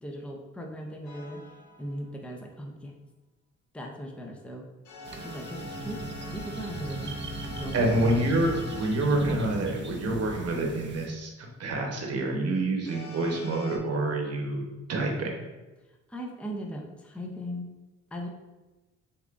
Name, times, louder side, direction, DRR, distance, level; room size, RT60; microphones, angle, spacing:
voice 1, 0.0-1.4 1.8-2.9 3.7-4.6 5.2-6.0 6.3-7.2 7.5-8.2 16.1-17.7 18.1-18.3, equal, 5° left, 1 dB, 0.6 m, -38 dB
sound 1, 1.0-2.1 4.8-10.5 12.8-13.8, left 2 dB, 70° left, 0.7 m, -44 dB
sound 2, 5.0-11.1, right 3 dB, 40° right, 0.6 m, -38 dB
voice 2, 7.7-15.3, right 2 dB, 55° right, 1 dB, 1.0 m, -27 dB
6.7 x 2.5 x 2.5 m, 1.1 s
cardioid pair, 90°, 30 cm